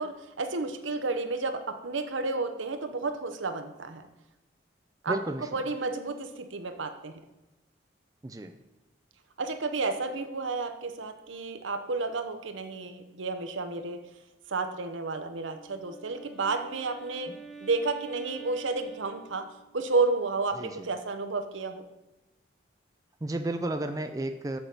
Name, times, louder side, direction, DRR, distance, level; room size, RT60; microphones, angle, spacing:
voice 1, 0.0-4.1 5.0-7.2 9.4-14.0 14.5-17.3 17.6-19.5 19.7-21.8, right 3 dB, 85° right, 8 dB, 0.8 m, -31 dB
voice 2, 5.1-5.6 8.2-8.6 20.6-20.9 23.2-24.6, right 1 dB, 20° right, 7 dB, 0.4 m, -33 dB
Wind instrument woodwind instrument, 15.4-19.9, right 3 dB, ahead, 0.7 m, -48 dB
7.5 x 6.9 x 5.4 m, 1.0 s
head